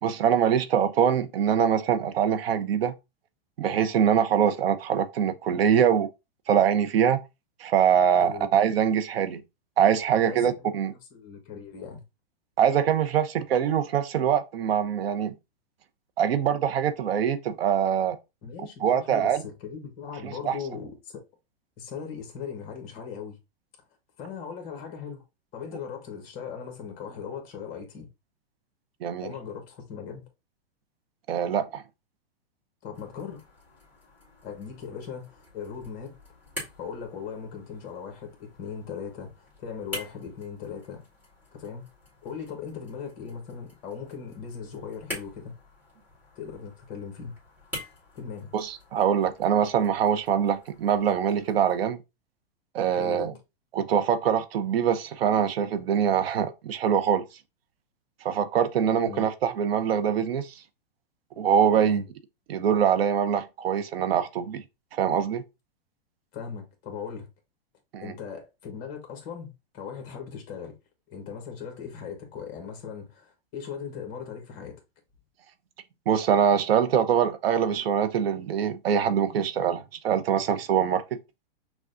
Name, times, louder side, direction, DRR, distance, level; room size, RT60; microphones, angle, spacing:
voice 1, 0.0-2.9 3.6-6.1 6.5-7.2 7.6-9.4 9.8-10.9 12.6-15.3 16.2-18.2 18.8-19.4 20.2-20.5 29.0-29.3 31.3-31.8 48.5-52.0 52.7-53.3 53.7-57.2 58.2-60.5 61.4-62.0 62.5-64.6 64.9-65.4 67.9-68.1 76.1-81.2, right 8 dB, 75° right, 0.7 m, -23 dB
voice 2, 8.2-8.5 10.2-12.0 18.4-21.2 21.8-23.4 24.2-25.2 25.5-28.1 29.2-30.3 32.8-33.4 34.4-36.2 36.8-41.0 41.5-41.9 42.2-45.6 46.3-47.3 48.1-48.5 52.9-53.4 59.0-59.3 61.7-62.0 66.3-67.3 68.0-70.8 71.1-74.8, left 6 dB, 30° left, 1.2 m, -39 dB
sound 1, 32.9-51.9, left 1 dB, 5° right, 1.5 m, -46 dB
6.0 x 2.3 x 2.5 m
hypercardioid pair, 160°, 30 cm